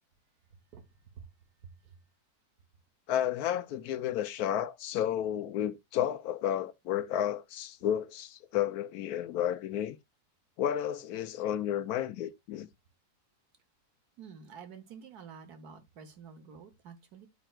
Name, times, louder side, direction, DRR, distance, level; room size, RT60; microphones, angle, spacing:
voice 1, 0.7-1.3 1.6-2.0 14.2-17.3, right 6 dB, 80° right, 1.6 m, -49 dB
voice 2, 3.1-10.0 10.6-12.7, left 10 dB, 75° left, 1.1 m, -32 dB
12.5 x 4.5 x 2.3 m
omnidirectional pair, 1.6 m